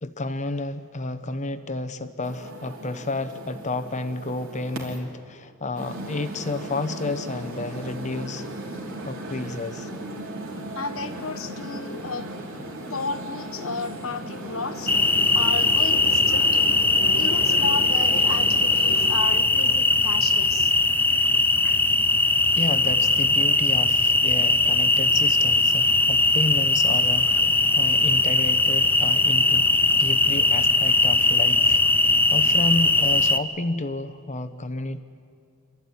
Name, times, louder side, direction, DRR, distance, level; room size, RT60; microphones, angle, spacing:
voice 1, 0.0-8.4 9.0-9.9 22.6-29.7 30.0-35.0, left 2 dB, 35° left, 12 dB, 0.9 m, -31 dB
sound 1, 2.2-5.0 5.7-19.1, right 1 dB, 70° right, 3.7 m, -36 dB
voice 2, 10.7-12.3 12.9-14.9 15.3-16.8 17.1-20.7, left 4 dB, 70° left, 10 dB, 1.2 m, -33 dB
sound 2, 14.9-33.4, left 2 dB, 10° left, 0.6 m, -20 dB
27.5 x 13.5 x 9.7 m, 2.3 s
head